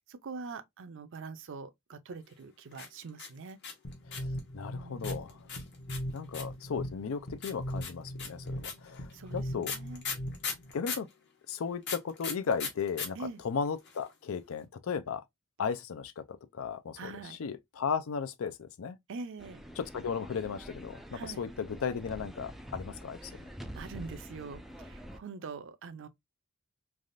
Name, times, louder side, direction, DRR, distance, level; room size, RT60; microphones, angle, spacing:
voice 1, 0.1-3.6 4.7-5.2 9.1-10.0 13.2-13.4 17.0-17.4 19.1-19.6 21.1-21.4 23.2-23.4 23.7-26.1, right 4 dB, 65° right, 0.5 m, -44 dB
sound 1, 2.7-4.4 5.0-6.6 7.4-11.1 11.8-13.1 13.3-13.4 13.6-14.1, left 5 dB, 55° left, 1.0 m, -37 dB
sound 2, 3.8-10.7, equal, 40° left, 0.7 m, -40 dB
voice 2, 4.1-5.4 6.1-9.7 10.7-11.1 11.5-13.2 13.4-15.2 15.6-16.2 16.5-17.1 17.4-19.0 19.8-23.3, left 6 dB, 70° left, 0.4 m, -35 dB
sound 3, 19.4-25.2, equal, ahead, 0.3 m, -46 dB
3.4 x 2.4 x 2.5 m
head